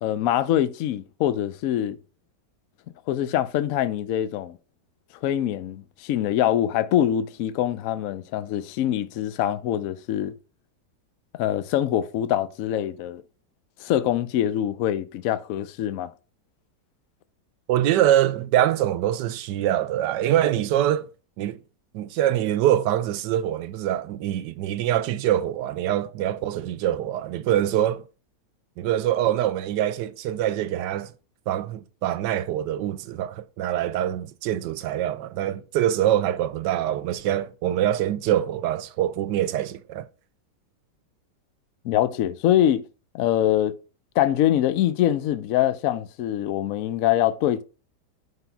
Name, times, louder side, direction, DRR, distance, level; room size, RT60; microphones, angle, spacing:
voice 1, 0.0-2.0 3.1-4.6 5.2-10.3 11.3-13.2 13.8-16.1 41.8-42.8 43.1-43.7 44.2-47.6, left 11 dB, 70° left, 0.8 m, -24 dB
voice 2, 17.7-21.1 21.4-21.6 21.9-28.0 28.8-31.1 31.5-40.1, right 12 dB, 80° right, 1.2 m, -24 dB
5.6 x 3.8 x 5.8 m
omnidirectional pair, 1.8 m